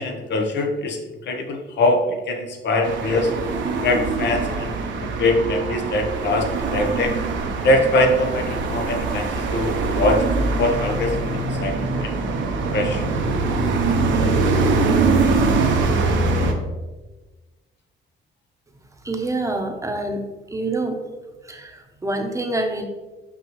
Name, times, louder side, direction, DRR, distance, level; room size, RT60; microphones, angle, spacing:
voice 1, 0.0-3.3 3.8-7.2 7.6-12.1 12.7-13.1, left 2 dB, 60° left, 3 dB, 1.1 m, -23 dB
sound 1, 2.8-16.5, right 3 dB, 70° right, 0.9 m, -22 dB
voice 2, 19.0-20.2 20.5-21.0 21.4-22.9, right 2 dB, 15° right, 4 dB, 0.9 m, -26 dB
5.9 x 5.2 x 3.1 m, 1.2 s
cardioid pair, 90°, 20 cm